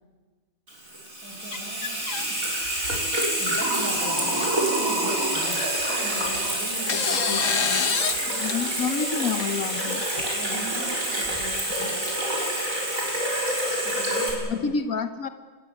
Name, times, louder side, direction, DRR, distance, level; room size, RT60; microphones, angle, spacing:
Water tap faucet / Sink (filling or washing), 0.7-14.3, right 1 dB, 80° right, 6.6 m, -27 dB
voice 1, 0.9-2.4 2.7-2.8 3.4-5.6 5.9-8.5 10.3-12.0 13.8-14.7, equal, 5° left, 1 dB, 6.9 m, -39 dB
sound 1, 1.5-2.2 2.7-3.1 3.9-4.0 4.4-4.5 5.8-6.4 6.9-8.2 8.5-8.6 9.7-10.5, left 6 dB, 70° left, 1.6 m, -28 dB
voice 2, 8.3-10.0 14.5-15.3, left 5 dB, 85° left, 10 dB, 1.6 m, -28 dB
26.0 x 21.0 x 9.8 m, 1.4 s
omnidirectional pair, 1.4 m